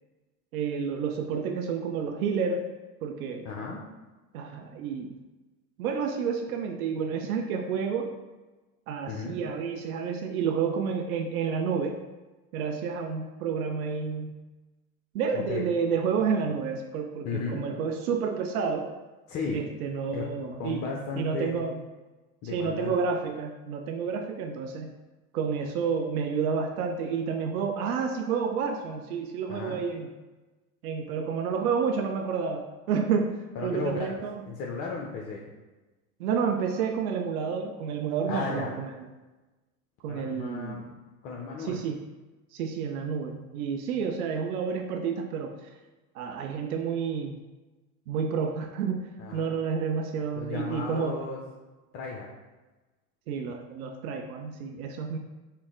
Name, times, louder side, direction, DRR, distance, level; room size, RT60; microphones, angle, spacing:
voice 1, 0.5-2.7 3.0-3.5 4.3-5.1 5.8-8.1 8.9-12.0 12.5-14.3 15.1-18.9 19.5-20.8 21.2-21.8 22.5-24.9 25.3-30.1 30.8-34.4 36.2-38.9 40.0-40.8 41.6-42.0 42.5-45.7 46.1-47.4 48.1-51.2 53.3-55.2, right 6 dB, 75° right, 4 dB, 0.5 m, -30 dB
voice 2, 3.4-3.9 9.0-9.4 15.5-15.6 17.2-17.6 19.3-19.6 20.1-20.2 20.6-21.6 22.4-22.9 29.5-29.8 33.6-33.9 34.5-35.5 38.3-38.8 40.1-40.8 41.2-41.8 49.2-49.6 50.3-51.4 51.9-52.3, left 4 dB, 35° left, -1 dB, 0.5 m, -34 dB
4.3 x 2.0 x 3.6 m, 1.2 s
hypercardioid pair, 90°, 44 cm